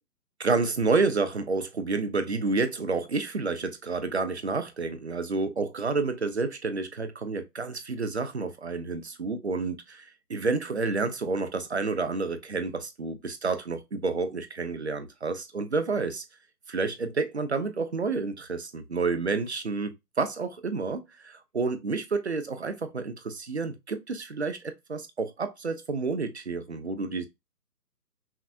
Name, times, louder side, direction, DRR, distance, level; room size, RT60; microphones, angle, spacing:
voice 1, 0.4-16.2 16.7-27.3, right 4 dB, 45° right, 0.5 m, -29 dB
5.8 x 2.3 x 2.6 m
figure-of-eight pair, 160°, 50 cm